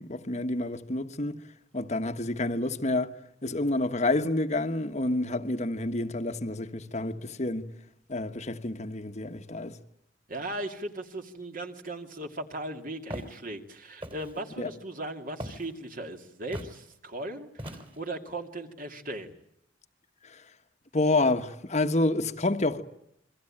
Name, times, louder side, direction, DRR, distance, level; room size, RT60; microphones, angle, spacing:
voice 1, 0.0-1.4 1.7-3.1 3.4-7.7 8.1-9.8 14.6-14.7 20.2-20.4 20.9-22.8, left 2 dB, 35° left, 1.3 m, -28 dB
voice 2, 10.3-19.4, right 1 dB, 45° right, 2.5 m, -38 dB
Walk footsteps, 13.1-13.4 14.0-14.4 15.4-15.7 16.5-16.8 17.6-18.1, equal, 30° right, 3.4 m, -39 dB
28.5 x 23.5 x 8.8 m
head